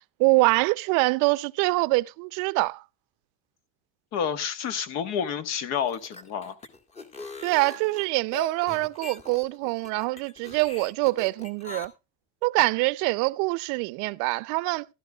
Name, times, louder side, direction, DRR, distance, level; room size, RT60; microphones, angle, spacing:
voice 1, 0.2-2.8 7.4-11.9 12.4-14.9, right 24 dB, 75° right, 0.6 m, -24 dB
voice 2, 4.1-6.6, left 8 dB, 55° left, 1.5 m, -29 dB
sound 1, 5.8-11.9, left 3 dB, 20° left, 1.7 m, -42 dB
15.0 x 12.5 x 2.4 m
cardioid pair, 160°, 31 cm